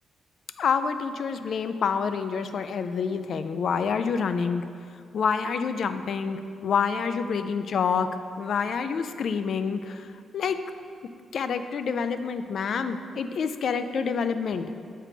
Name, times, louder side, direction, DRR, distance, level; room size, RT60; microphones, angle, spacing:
voice 1, 0.6-4.6 5.1-8.1 8.4-10.1 10.3-10.6 11.3-14.7, left 6 dB, 65° left, 10 dB, 0.3 m, -27 dB
7.3 x 3.3 x 5.0 m, 2.3 s
cardioid pair, 85°, 0 cm